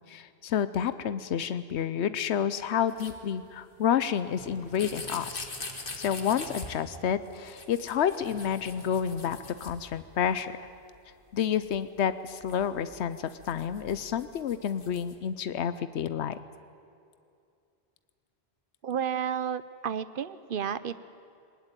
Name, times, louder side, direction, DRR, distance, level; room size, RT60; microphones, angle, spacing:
voice 1, 0.1-5.5 6.0-10.5 11.3-16.3, left 8 dB, 90° left, 13 dB, 1.0 m, -29 dB
sound 1, 2.9-3.2 4.0-4.1 4.7-6.7 7.3-10.3 10.7-10.8 10.9-11.0 11.6-15.2, left 3 dB, 55° left, 2.1 m, -43 dB
sound 2, 4.4-6.6 8.3-9.3, right 1 dB, 25° left, 5.2 m, -51 dB
voice 2, 18.8-21.0, right 8 dB, 55° right, 15 dB, 0.9 m, -32 dB
20.0 x 20.0 x 9.1 m, 2.5 s
omnidirectional pair, 1.1 m